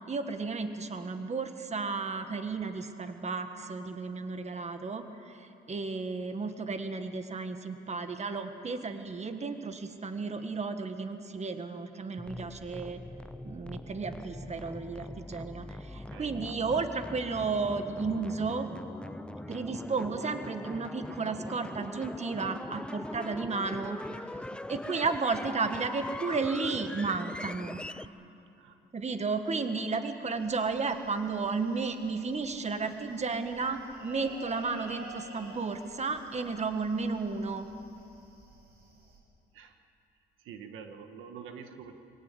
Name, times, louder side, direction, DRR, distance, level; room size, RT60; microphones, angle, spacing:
voice 1, 0.1-13.0 13.4-18.7 19.5-24.0 24.7-27.8 28.9-37.7, right 4 dB, 35° right, 8 dB, 1.6 m, -33 dB
sound 1, 12.2-28.1, left 1 dB, 5° left, 0.5 m, -42 dB
voice 2, 15.9-16.3 28.6-28.8 39.5-39.8 40.4-41.9, right 6 dB, 90° right, 6 dB, 1.6 m, -46 dB
sound 2, 30.3-39.2, right 3 dB, 50° right, 5.7 m, -52 dB
24.0 x 18.0 x 8.4 m, 2.8 s
cardioid pair, 90°, 20 cm